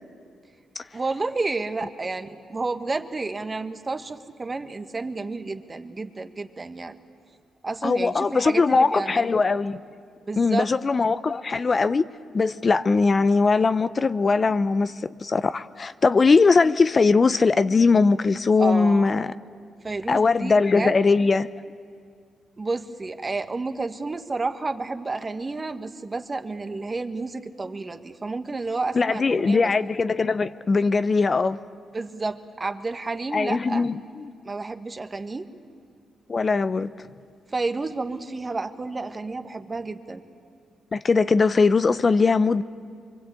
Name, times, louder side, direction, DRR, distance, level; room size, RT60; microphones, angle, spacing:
voice 1, 0.9-7.0 7.6-9.3 10.3-10.7 18.6-19.2 19.8-21.0 22.6-29.7 31.9-33.9 34.4-35.5 37.5-40.2, right 3 dB, 30° right, 1.5 m, -30 dB
voice 2, 7.8-9.8 10.4-12.0 12.3-19.3 20.1-21.5 28.9-31.6 33.3-34.3 36.3-36.9 40.9-42.6, left 4 dB, 40° left, 0.6 m, -20 dB
24.5 x 24.0 x 8.4 m
supercardioid pair, 60°, 0 cm